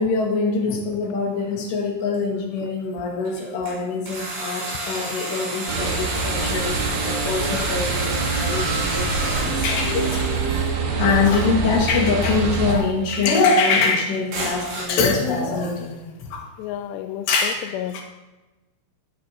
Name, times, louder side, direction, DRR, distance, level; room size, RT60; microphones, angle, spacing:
voice 1, 0.0-10.3 11.0-16.0 16.3-16.4 17.3-18.0, left 4 dB, 65° left, -1 dB, 4.0 m, -23 dB
sound 1, 1.4-1.5 2.1-2.2 3.3-3.8 4.1-10.4 12.5-12.7 13.2-13.3 14.3-14.8, right 2 dB, 50° right, 7.5 m, -30 dB
sound 2, 5.7-12.8, right 3 dB, 80° right, 4.7 m, -25 dB
voice 2, 16.6-18.0, left 11 dB, 85° left, 9 dB, 2.5 m, -31 dB
19.5 x 14.0 x 3.0 m, 1.1 s
omnidirectional pair, 5.6 m